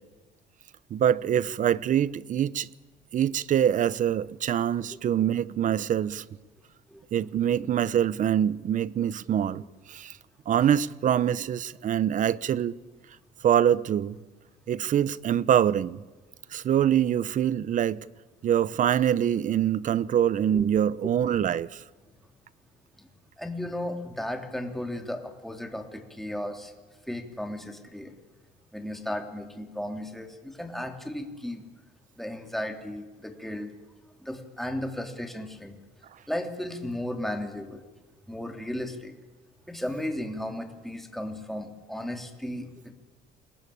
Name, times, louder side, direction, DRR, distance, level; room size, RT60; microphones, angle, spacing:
voice 1, 0.9-2.7 3.1-6.2 7.1-10.2 10.5-12.8 13.4-14.2 14.7-16.0 16.5-18.0 18.4-21.8, right 9 dB, 50° right, 0.9 m, -24 dB
voice 2, 23.4-26.7 27.1-28.1 28.7-31.6 32.2-33.7 34.2-35.7 36.3-37.8 38.3-39.1 39.7-42.9, left 1 dB, ahead, 3.3 m, -35 dB
28.5 x 21.0 x 8.7 m
cardioid pair, 110°, 17 cm